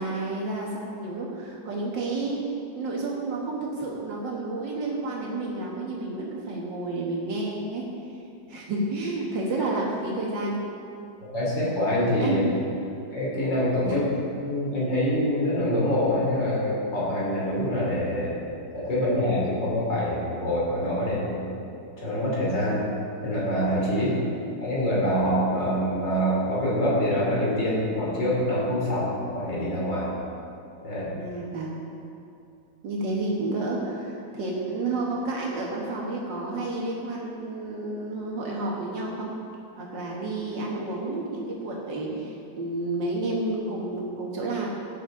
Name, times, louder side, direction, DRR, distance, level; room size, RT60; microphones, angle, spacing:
voice 1, 0.0-2.4 2.7-7.9 8.5-10.6 12.2-12.4 13.8-14.0 23.9-24.2 31.2-31.8 32.8-39.3 39.8-44.7, right 2 dB, 80° right, -3 dB, 2.2 m, -30 dB
voice 2, 11.3-12.4 13.1-14.0 14.4-18.3 18.7-21.5 22.0-22.8 23.2-24.1 24.6-30.1 30.8-31.1, equal, 85° left, -6 dB, 3.9 m, -25 dB
16.5 x 10.0 x 3.8 m, 2.6 s
omnidirectional pair, 1.9 m